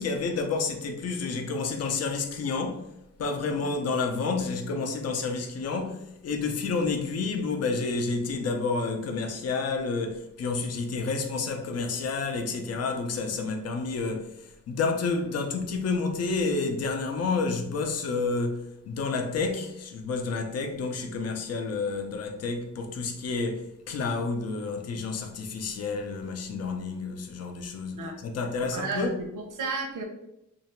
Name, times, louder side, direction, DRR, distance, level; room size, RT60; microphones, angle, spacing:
voice 1, 0.0-2.9 3.2-14.3 14.7-29.2, left 4 dB, 55° left, 0.6 m, -30 dB
voice 2, 28.6-30.0, right 3 dB, 85° right, 0.8 m, -34 dB
2.8 x 2.6 x 4.4 m
wide cardioid pair, 165°, 30 cm